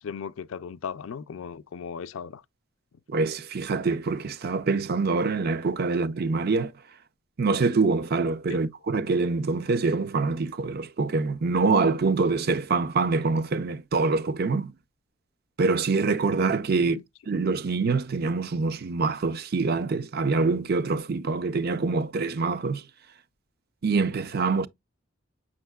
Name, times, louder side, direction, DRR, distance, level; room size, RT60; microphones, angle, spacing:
voice 1, 0.0-2.4 16.9-17.0, left 6 dB, 75° left, 0.4 m, -37 dB
voice 2, 3.1-6.7 7.4-14.7 15.6-17.0 17.3-22.8 23.8-24.7, right 4 dB, 50° right, 0.5 m, -25 dB
7.4 x 6.3 x 2.3 m
head